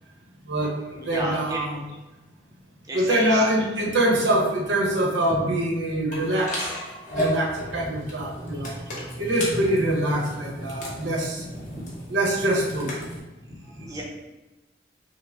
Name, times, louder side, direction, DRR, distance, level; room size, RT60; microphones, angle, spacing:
voice 1, 0.4-1.8 2.9-6.7 7.1-8.8 9.2-11.4 12.1-12.9, right 1 dB, 80° right, -2 dB, 1.0 m, -24 dB
voice 2, 0.9-1.6 2.9-3.4 8.8-8.9 11.4-11.9 13.4-14.0, right 1 dB, 20° right, -3 dB, 0.6 m, -33 dB
sound 1, 6.1-13.2, equal, 45° left, 1.2 m, -33 dB
5.9 x 2.1 x 3.5 m, 1.1 s
head